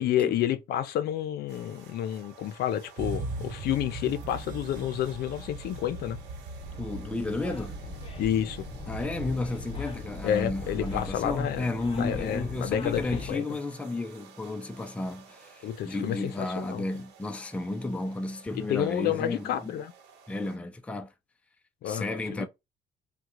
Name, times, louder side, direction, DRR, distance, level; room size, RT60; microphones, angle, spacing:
voice 1, 0.0-6.2 8.2-8.7 10.2-11.7 12.0-13.4 15.6-16.8 18.5-19.9 21.8-22.1 22.3-22.5, left 11 dB, 70° left, 0.6 m, -30 dB
sound 1, 1.5-20.6, right 5 dB, 85° right, 0.9 m, -53 dB
sound 2, 3.0-9.9, right 3 dB, 50° right, 1.0 m, -40 dB
sound 3, 6.6-13.3, left 2 dB, 30° left, 0.9 m, -40 dB
voice 2, 6.8-7.8 8.9-19.7 20.3-21.1 21.8-22.5, left 2 dB, 5° left, 0.4 m, -33 dB
3.6 x 2.2 x 2.9 m
cardioid pair, 110°, 17 cm